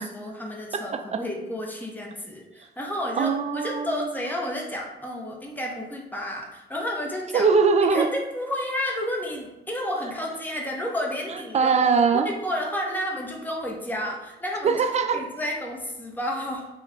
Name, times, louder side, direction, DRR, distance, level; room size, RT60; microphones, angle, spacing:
voice 1, 0.0-7.5 7.8-11.9 12.4-14.8 15.1-16.7, left 1 dB, 10° left, -1 dB, 0.7 m, -31 dB
voice 2, 3.2-4.1 7.3-8.1 11.5-12.3 14.6-15.2, right 5 dB, 35° right, 7 dB, 0.3 m, -21 dB
2.3 x 2.1 x 3.8 m, 1.0 s
cardioid pair, 60°, 20 cm